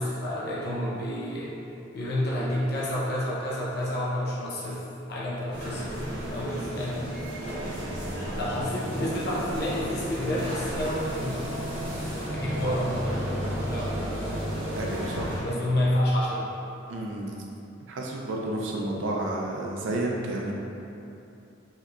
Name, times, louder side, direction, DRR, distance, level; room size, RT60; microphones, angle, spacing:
voice 1, 0.0-1.6 1.9-7.2 8.1-14.3 15.4-16.5, left 1 dB, 55° left, -6 dB, 0.5 m, -30 dB
sound 1, 5.5-15.4, right 1 dB, 55° right, 1.1 m, -35 dB
sound 2, 8.7-15.2, equal, 90° right, 0.8 m, -34 dB
voice 2, 14.8-15.3 16.9-17.4 17.9-20.5, right 1 dB, 70° right, -1 dB, 0.4 m, -31 dB
3.2 x 2.8 x 2.4 m, 2.9 s
head